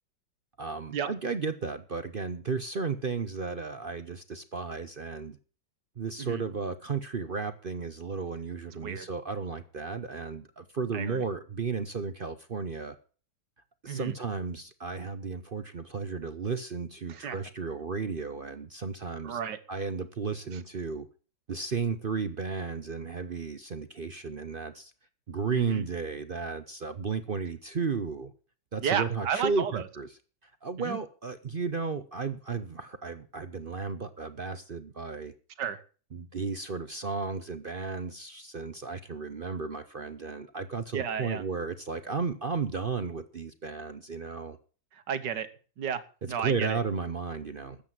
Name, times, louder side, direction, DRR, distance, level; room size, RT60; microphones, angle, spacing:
voice 1, 0.6-5.4 6.0-13.0 13.8-19.4 19.7-21.1 21.5-24.9 25.3-28.3 28.7-30.1 30.4-35.3 36.1-44.6 46.2-47.8, right 5 dB, 45° right, 11 dB, 0.7 m, -34 dB
voice 2, 10.9-11.2 13.9-14.1 17.1-17.4 19.2-19.6 25.5-25.8 28.8-29.8 30.8-31.0 35.6-35.8 40.9-41.4 44.9-45.5 45.8-46.8, right 7 dB, 70° right, 12 dB, 1.7 m, -32 dB
13.5 x 8.5 x 7.5 m, 0.39 s
omnidirectional pair, 2.0 m